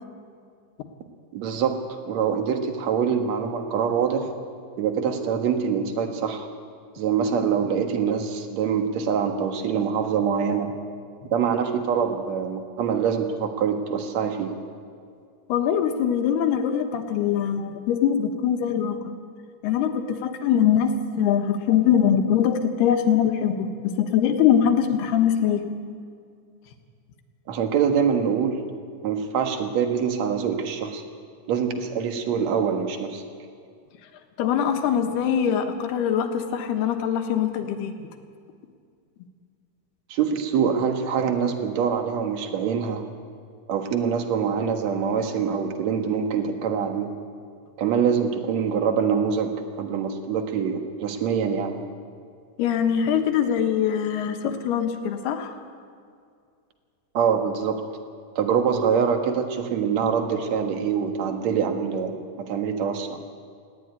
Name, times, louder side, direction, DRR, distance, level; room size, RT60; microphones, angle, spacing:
voice 1, 1.3-4.3 4.8-6.5 7.0-10.7 11.3-14.5 27.5-28.6 29.0-31.0 31.5-33.2 40.1-43.0 43.7-47.1 47.8-51.8 57.1-57.8 58.4-63.2, right 7 dB, 55° right, 5 dB, 2.2 m, -24 dB
voice 2, 15.5-19.0 19.6-25.6 34.4-37.9 52.6-55.5, left 8 dB, 85° left, 6 dB, 3.3 m, -22 dB
19.0 x 15.5 x 9.5 m, 2.2 s
omnidirectional pair, 4.6 m